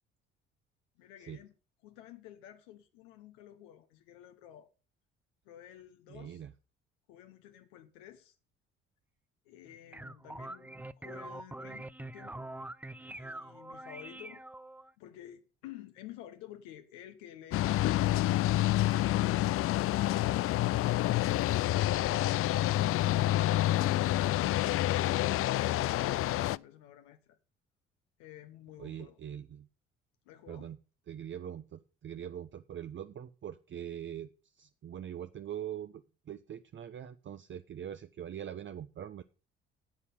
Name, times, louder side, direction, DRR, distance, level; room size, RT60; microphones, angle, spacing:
voice 1, 1.0-1.5 1.8-4.7 5.4-6.4 7.1-8.4 9.4-12.5 13.1-14.4 15.0-18.8 23.5-27.4 28.2-29.2 30.2-30.7, left 12 dB, 80° left, 1.1 m, -52 dB
voice 2, 6.1-6.5 28.8-29.7 30.5-30.8 31.1-34.3 34.5-39.2, right 10 dB, 40° right, 0.8 m, -42 dB
sound 1, 9.7-14.9, right 2 dB, 5° right, 0.5 m, -44 dB
sound 2, 17.5-26.6, left 15 dB, 50° left, 0.4 m, -28 dB
9.6 x 8.4 x 5.7 m
hypercardioid pair, 55°, 29 cm